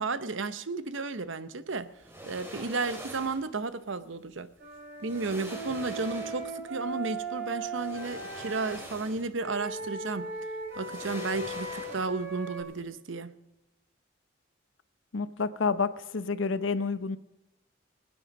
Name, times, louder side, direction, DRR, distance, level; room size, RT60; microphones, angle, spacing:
voice 1, 0.0-1.9 2.3-4.5 5.0-10.3 10.7-13.3, right 3 dB, 80° right, 13 dB, 0.8 m, -33 dB
sound 1, 2.0-3.5 4.6-4.7 5.0-6.6 7.7-9.4 9.8-9.9 10.7-12.3 12.6-12.7, right 1 dB, 10° right, 2.4 m, -45 dB
Wind instrument woodwind instrument, 4.6-8.8 9.4-12.6, right 3 dB, 55° right, 3.8 m, -38 dB
voice 2, 15.1-17.2, left 4 dB, 80° left, 14 dB, 0.7 m, -29 dB
25.0 x 9.0 x 5.3 m, 0.97 s
head